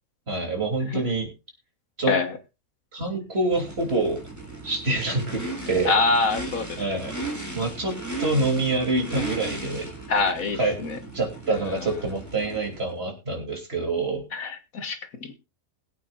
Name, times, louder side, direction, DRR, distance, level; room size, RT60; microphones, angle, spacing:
voice 1, 0.3-1.3 2.0-2.1 2.9-4.2 4.6-5.9 6.8-7.2 7.5-9.9 10.6-10.7 11.1-14.3, right 2 dB, 45° right, 2 dB, 3.4 m, -26 dB
Race car auto racing / Idling / Accelerating revving vroom, 3.5-12.9, right 2 dB, 10° right, 3.7 m, -36 dB
voice 2, 5.9-6.8 10.1-11.0 14.3-15.3, left 3 dB, 70° left, 7 dB, 1.8 m, -25 dB
21.5 x 8.7 x 2.5 m, 0.27 s
omnidirectional pair, 1.5 m